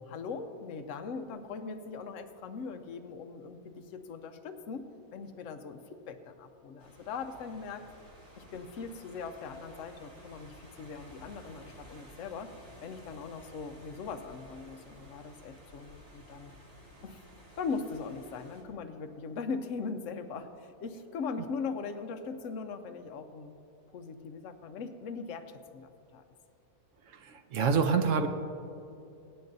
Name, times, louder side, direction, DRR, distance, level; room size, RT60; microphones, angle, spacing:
voice 1, 0.1-4.8 5.1-5.8 6.1-7.8 8.4-12.5 12.8-16.5 17.0-17.2 17.6-23.5 23.9-26.2, left 5 dB, 60° left, 7 dB, 1.0 m, -40 dB
sound 1, 6.8-18.6, equal, 30° right, 1.8 m, -54 dB
voice 2, 27.2-28.3, right 5 dB, 65° right, 7 dB, 0.9 m, -26 dB
23.0 x 8.9 x 2.7 m, 2.7 s
omnidirectional pair, 1.6 m